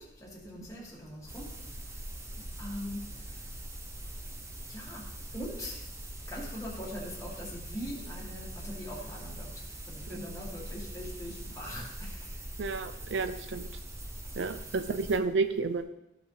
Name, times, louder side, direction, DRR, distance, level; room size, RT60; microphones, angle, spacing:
voice 1, 0.0-1.5 2.6-3.0 4.7-5.0 5.3-5.8 6.3-9.5 9.9-12.3 14.4-14.5, equal, 15° left, -4 dB, 2.0 m, -41 dB
sound 1, 1.3-15.2, right 1 dB, 15° right, 0.7 m, -42 dB
voice 2, 12.6-13.7 14.4-15.8, right 4 dB, 65° right, 10 dB, 0.5 m, -31 dB
15.0 x 5.2 x 3.2 m, 0.87 s
head